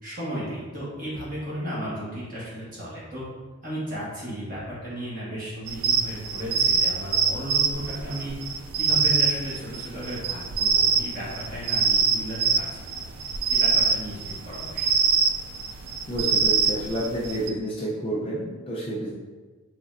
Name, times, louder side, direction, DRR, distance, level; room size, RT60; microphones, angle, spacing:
voice 1, 0.0-3.2 3.6-8.3 8.7-15.0, right 1 dB, 40° right, -8 dB, 1.4 m, -35 dB
sound 1, 5.7-17.5, right 5 dB, 90° right, 0.3 m, -24 dB
voice 2, 16.1-19.1, right 1 dB, 25° left, -5 dB, 0.5 m, -29 dB
3.9 x 3.2 x 2.5 m, 1.3 s
head